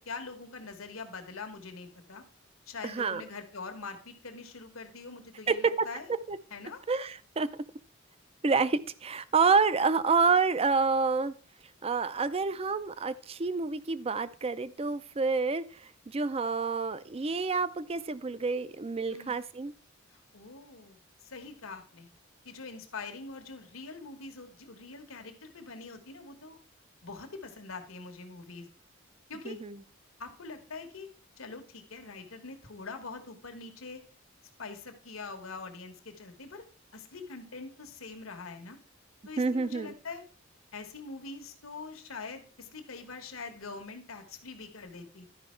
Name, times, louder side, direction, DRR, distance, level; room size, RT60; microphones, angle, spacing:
voice 1, 0.0-2.2 2.7-6.1 6.5-6.8 19.1-19.4 20.1-22.1 22.4-26.6 27.0-28.7 29.3-29.6 30.2-31.1 31.4-34.0 34.6-36.6 36.9-38.8 39.2-40.2 40.7-45.3, left 4 dB, 85° left, 1.4 m, -44 dB
voice 2, 2.8-3.2 5.5-5.9 6.3-6.4 6.9-7.5 8.4-11.3 11.8-19.7 29.4-29.8 39.4-39.9, right 4 dB, 30° right, 0.4 m, -28 dB
12.0 x 5.2 x 4.4 m
head